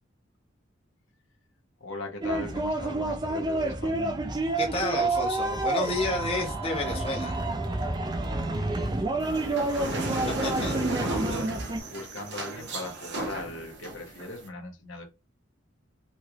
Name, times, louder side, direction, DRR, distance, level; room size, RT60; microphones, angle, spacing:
voice 1, 1.8-4.2 8.4-15.1, left 2 dB, 85° left, 0.8 m, -40 dB
sound 1, 2.2-11.8, right 2 dB, 20° right, 0.4 m, -29 dB
voice 2, 4.6-7.4 10.4-10.7, left 2 dB, 30° left, 0.8 m, -30 dB
sound 2, 9.2-14.5, right 2 dB, 60° right, 0.8 m, -34 dB
3.0 x 2.9 x 2.4 m
head